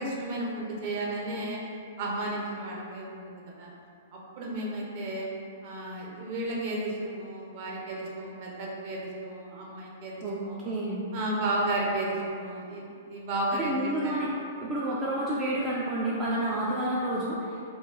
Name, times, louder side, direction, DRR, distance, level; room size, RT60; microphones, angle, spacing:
voice 1, 0.0-1.6 2.0-3.7 4.1-5.3 5.6-10.6 11.1-14.2, right 1 dB, 45° right, -3 dB, 0.7 m, -33 dB
voice 2, 10.2-11.0 13.5-14.3 14.6-17.7, right 1 dB, 25° right, -6 dB, 0.4 m, -30 dB
3.0 x 2.3 x 3.6 m, 2.5 s
figure-of-eight pair, 110°, 0 cm